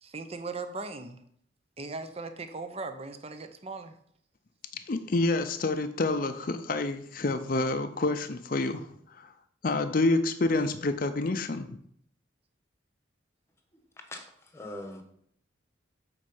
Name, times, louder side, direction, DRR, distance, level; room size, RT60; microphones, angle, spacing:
voice 1, 0.0-1.2 1.8-3.9, right 3 dB, 30° right, 8 dB, 0.7 m, -38 dB
voice 2, 4.7-8.9 9.2-9.3 9.6-11.8, left 2 dB, 45° left, 8 dB, 0.5 m, -28 dB
voice 3, 14.1-15.0, left 1 dB, 15° left, 4 dB, 1.1 m, -41 dB
8.2 x 4.5 x 5.5 m, 0.66 s
head